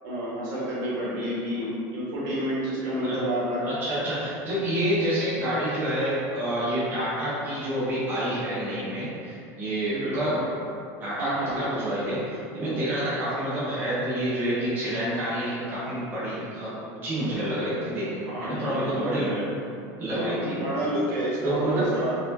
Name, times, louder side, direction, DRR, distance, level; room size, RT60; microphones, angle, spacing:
voice 1, 0.0-3.7 9.9-10.2 11.2-11.7 18.0-19.5 20.1-22.1, right 1 dB, 75° right, -7 dB, 1.3 m, -30 dB
voice 2, 3.6-10.5 11.0-19.3 20.0-20.6 21.4-22.0, right 1 dB, 20° right, -10 dB, 0.9 m, -28 dB
4.1 x 2.7 x 2.7 m, 2.5 s
cardioid pair, 170°, 10 cm